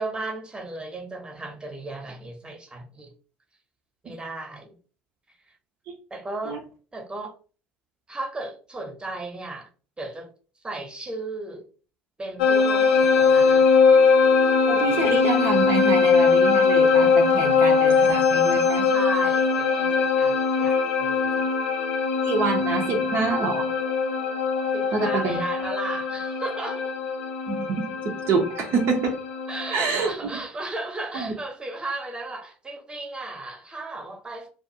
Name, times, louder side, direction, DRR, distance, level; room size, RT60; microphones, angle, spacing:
voice 1, 0.0-3.1 4.0-4.7 6.1-6.6 6.9-7.3 8.1-9.7 10.0-10.3 10.6-11.6 12.2-13.7 18.9-21.5 24.7-26.9 29.5-34.5, right 2 dB, 15° right, 0.8 m, -35 dB
sound 1, 12.4-29.8, left 5 dB, 75° left, 0.4 m, -21 dB
voice 2, 14.7-18.9 22.2-23.7 24.9-25.4 27.5-29.2 29.7-30.4 31.1-31.3, right 4 dB, 60° right, 0.5 m, -26 dB
2.4 x 2.4 x 2.6 m
hypercardioid pair, 55°, 5 cm